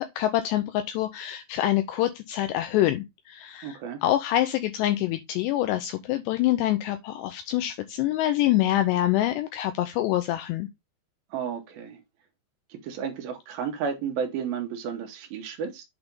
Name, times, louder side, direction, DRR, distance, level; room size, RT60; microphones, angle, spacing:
voice 1, 0.0-10.7, left 14 dB, 80° left, 2.6 m, -26 dB
voice 2, 3.6-4.0 11.3-12.0 12.8-15.8, right 7 dB, 70° right, 2.5 m, -32 dB
8.2 x 3.4 x 5.2 m
omnidirectional pair, 5.3 m